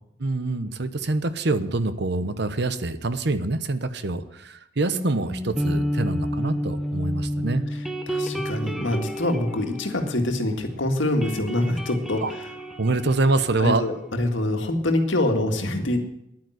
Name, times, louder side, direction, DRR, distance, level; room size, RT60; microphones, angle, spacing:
voice 1, 0.2-7.6 12.2-12.3 12.8-13.8, right 2 dB, 60° right, 11 dB, 1.0 m, -25 dB
sound 1, 4.9-10.7 11.0-14.4, equal, ahead, 1.0 m, -31 dB
voice 2, 7.7-12.5 13.6-16.0, left 1 dB, 75° left, 4 dB, 1.9 m, -25 dB
11.0 x 9.2 x 7.9 m, 0.81 s
head